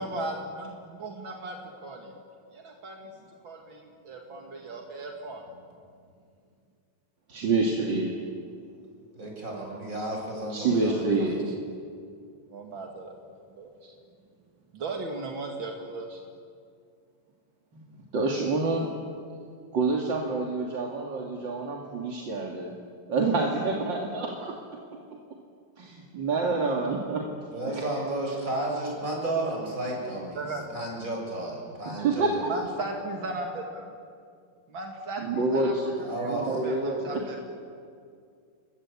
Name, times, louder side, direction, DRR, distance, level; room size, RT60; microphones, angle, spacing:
voice 1, 0.0-1.6 1.8-2.0 2.5-3.1 3.4-5.4 10.9-11.3 12.5-13.1 13.5-13.9 14.7-16.2 30.3-30.8 32.5-34.0 34.7-35.7 36.2-37.4, right 2 dB, 85° right, 2 dB, 3.0 m, -37 dB
voice 2, 7.3-8.3 10.5-11.4 17.7-17.8 18.1-18.9 19.7-22.7 23.1-24.6 25.8-25.9 26.1-27.3 27.7-27.8 31.9-32.5 35.2-35.9 36.2-37.2, right 3 dB, 70° right, 0 dB, 3.0 m, -27 dB
voice 3, 9.1-11.0 27.5-30.4 30.7-32.4 36.0-36.5, right 2 dB, 40° right, -1 dB, 7.6 m, -32 dB
30.0 x 23.5 x 8.6 m, 2.3 s
omnidirectional pair, 2.1 m